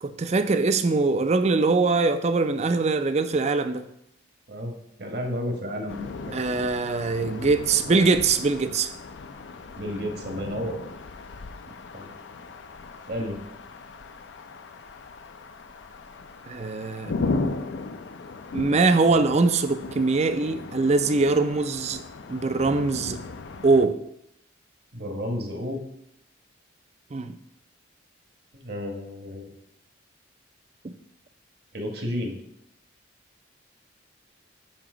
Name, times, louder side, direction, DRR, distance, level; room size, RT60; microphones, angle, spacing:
voice 1, 0.0-3.8 6.3-8.9 16.5-17.1 18.5-22.0 22.3-23.2 23.6-24.0 27.1-27.3 30.8-30.9, right 3 dB, 35° right, 0.4 m, -22 dB
voice 2, 4.5-6.1 7.8-8.0 9.8-10.8 11.9-12.1 13.1-13.4 24.9-25.8 28.5-29.5 31.7-32.4, equal, 55° right, 1.4 m, -32 dB
sound 1, 5.9-23.9, left 3 dB, 65° left, 0.5 m, -36 dB
8.7 x 2.9 x 6.1 m
head